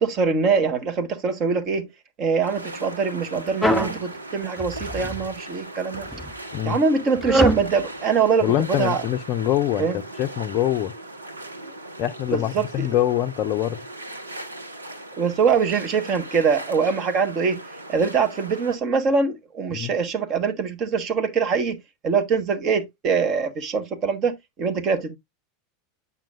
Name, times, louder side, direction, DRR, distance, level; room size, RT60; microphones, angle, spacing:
voice 1, 0.0-1.9 2.2-6.1 6.6-9.0 9.8-10.0 11.6-11.7 12.3-12.9 15.2-17.6 17.9-25.2, right 5 dB, 35° right, 1.2 m, -23 dB
sound 1, 2.4-18.8, right 1 dB, 80° right, 1.1 m, -38 dB
sound 2, 3.6-4.0 4.6-5.3 5.9-6.3 7.2-7.7, equal, 5° left, 0.7 m, -23 dB
voice 2, 8.4-9.9 10.2-10.9 12.0-13.8 19.7-19.9, left 12 dB, 40° left, 0.4 m, -24 dB
8.8 x 5.7 x 2.4 m
figure-of-eight pair, 80°, 0 cm